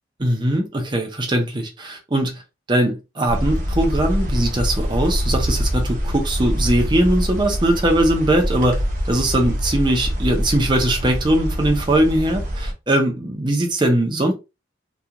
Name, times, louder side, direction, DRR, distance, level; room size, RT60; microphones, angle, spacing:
voice 1, 0.2-2.4 2.7-8.8 9.1-14.3, right 1 dB, 25° right, 0.6 m, -20 dB
sound 1, 3.3-12.7, equal, 45° right, 0.9 m, -24 dB
2.9 x 2.3 x 2.4 m
head